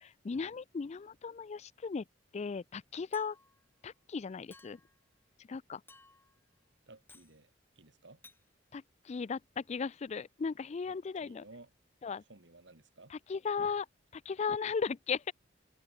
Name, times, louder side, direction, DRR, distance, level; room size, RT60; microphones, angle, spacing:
voice 1, 0.0-2.0 2.3-3.4 3.8-4.8 5.5-5.8 8.7-8.8 9.1-11.4 12.0-12.2 13.3-13.9 14.3-15.3, left 5 dB, 35° left, 0.4 m, -36 dB
Chink clink, 3.1-3.6 4.5-5.0 5.9-6.4 7.1-7.4 8.2-8.4, left 3 dB, 10° left, 2.2 m, -58 dB
voice 2, 6.9-8.2 10.9-11.7 12.2-13.1, right 2 dB, 65° right, 2.4 m, -57 dB
open air
head